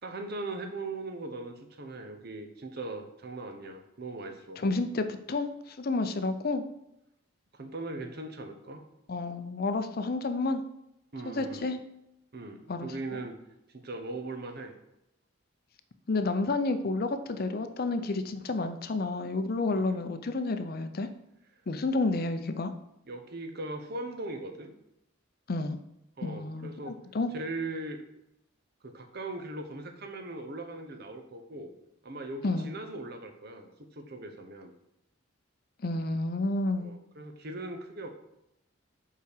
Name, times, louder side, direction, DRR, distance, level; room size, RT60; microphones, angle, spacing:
voice 1, 0.0-4.6 7.5-8.8 11.1-11.7 12.3-13.4 13.7-14.7 19.7-20.0 23.1-24.7 26.2-26.9 27.3-28.0 28.8-31.7 32.0-34.7 36.8-38.1, right 2 dB, 50° right, 6 dB, 0.9 m, -39 dB
voice 2, 4.6-6.6 9.1-10.6 11.3-11.8 12.7-12.9 16.1-21.1 21.7-22.7 25.5-25.8 26.2-27.3 32.4-32.7 35.8-36.9, left 3 dB, 50° left, 9 dB, 0.6 m, -30 dB
5.6 x 4.9 x 6.5 m, 0.84 s
head